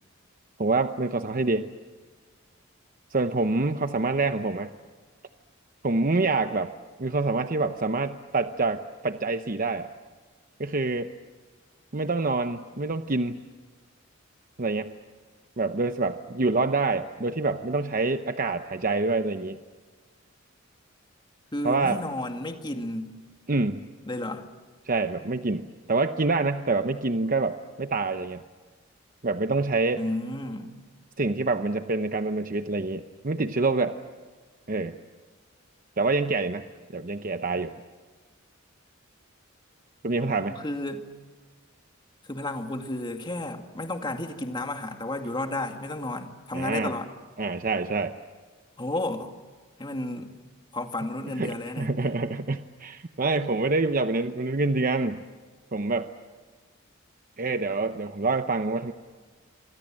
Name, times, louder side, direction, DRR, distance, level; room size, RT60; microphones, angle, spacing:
voice 1, 0.6-1.7 3.1-4.7 5.8-6.7 7.0-9.9 10.6-11.1 11.9-13.4 14.6-14.9 15.6-19.6 21.6-22.0 23.5-23.9 24.8-28.4 29.2-30.0 31.2-34.0 34.7-35.0 36.0-36.6 36.9-37.7 40.0-40.6 46.5-46.9 47.4-48.2 51.4-55.2 55.7-56.1 57.4-58.9, right 3 dB, 45° right, 8 dB, 0.9 m, -26 dB
voice 2, 21.5-23.1 24.1-24.4 30.0-30.7 40.2-41.1 42.3-47.1 48.8-49.3 49.8-50.3 50.7-51.9, left 1 dB, 20° left, 5 dB, 2.2 m, -32 dB
28.0 x 25.0 x 7.6 m, 1.4 s
head